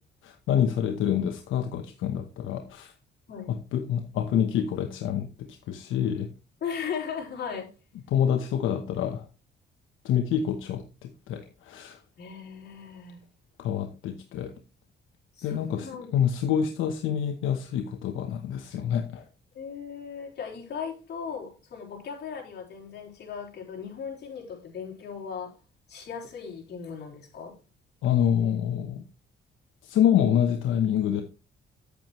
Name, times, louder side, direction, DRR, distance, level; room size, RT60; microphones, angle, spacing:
voice 1, 0.2-2.9 3.5-6.3 8.1-9.3 10.0-12.0 13.6-14.5 15.4-19.2 28.0-29.0 29.8-31.2, left 9 dB, 85° left, 1.0 m, -27 dB
voice 2, 6.6-7.7 12.2-13.2 15.4-16.2 19.5-25.5 25.9-27.6, left 6 dB, 55° left, 4.2 m, -37 dB
9.1 x 8.4 x 3.1 m
cardioid pair, 90°, 20 cm